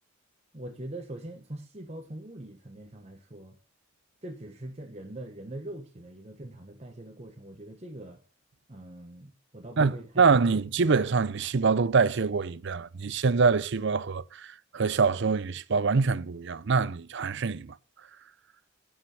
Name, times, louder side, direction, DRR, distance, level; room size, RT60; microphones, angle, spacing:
voice 1, 0.5-3.6 4.2-8.2 8.7-10.6, right 1 dB, 30° right, 1.2 m, -42 dB
voice 2, 9.8-17.8, right 4 dB, 55° right, 0.5 m, -25 dB
9.7 x 7.1 x 5.5 m
head